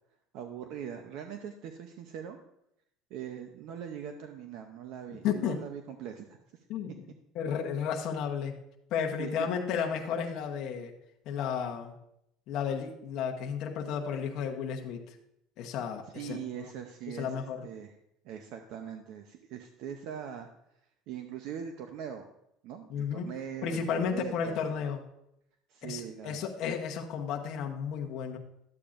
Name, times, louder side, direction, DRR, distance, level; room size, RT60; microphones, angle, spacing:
voice 1, 0.3-2.4 3.1-6.4 9.2-9.5 16.1-17.9 18.2-20.5 21.1-22.3 22.6-24.6 25.7-26.4, right 8 dB, 60° right, 6 dB, 0.7 m, -41 dB
voice 2, 5.2-5.6 6.7-6.9 7.3-8.5 8.9-10.9 11.3-11.9 12.5-15.1 15.6-16.4 17.1-17.6 22.9-23.3 23.6-25.0 25.8-28.4, left 7 dB, 55° left, 1 dB, 1.0 m, -33 dB
12.0 x 8.5 x 2.5 m, 0.79 s
cardioid pair, 140°, 0 cm